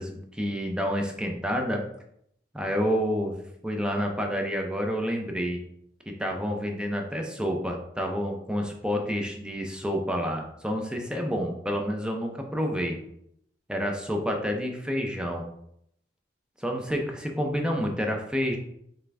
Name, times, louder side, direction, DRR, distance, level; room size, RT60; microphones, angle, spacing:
voice 1, 0.0-1.8 2.5-5.6 6.1-13.0 13.7-15.4 16.6-18.6, equal, 5° right, 2 dB, 0.6 m, -29 dB
3.8 x 3.4 x 3.3 m, 0.72 s
head